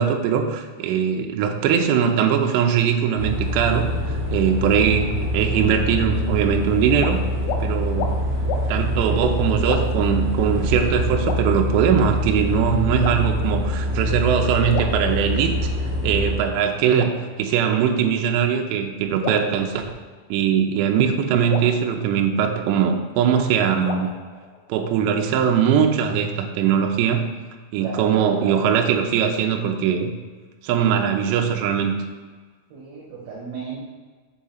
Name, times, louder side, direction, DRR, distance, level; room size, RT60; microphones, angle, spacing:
voice 1, 0.0-7.2 7.6-8.1 8.7-15.5 16.0-17.1 17.4-19.9 20.3-24.1 24.7-27.3 27.7-30.1 30.6-31.9, right 8 dB, 85° right, 4 dB, 2.5 m, -21 dB
sound 1, 3.2-16.4, equal, 45° right, 3.1 m, -25 dB
sound 2, 6.9-7.1 7.4-7.6 7.9-8.1 8.5-8.7 9.6-10.1 11.2-12.1 13.0-13.7 14.7-15.7 16.9-18.1 19.2-20.4 21.5-22.9 23.8-25.0, left 6 dB, 85° left, 3.2 m, -34 dB
voice 2, 27.8-28.8 32.7-33.8, right 5 dB, 70° right, -5 dB, 2.5 m, -34 dB
7.2 x 3.7 x 5.6 m, 1.4 s
omnidirectional pair, 5.7 m